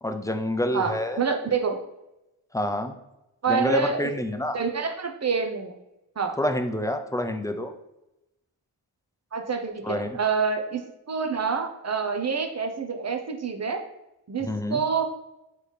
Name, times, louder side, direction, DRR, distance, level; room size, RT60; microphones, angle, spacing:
voice 1, 0.0-1.2 2.5-2.9 3.5-4.6 6.4-7.7 9.8-10.2 14.4-14.8, left 1 dB, 10° left, 6 dB, 0.4 m, -27 dB
voice 2, 0.7-1.8 3.4-4.1 4.5-5.7 6.2-6.4 9.3-13.8 14.3-15.0, right 5 dB, 35° right, 5 dB, 0.7 m, -27 dB
3.9 x 3.3 x 3.2 m, 0.89 s
cardioid pair, 45°, 47 cm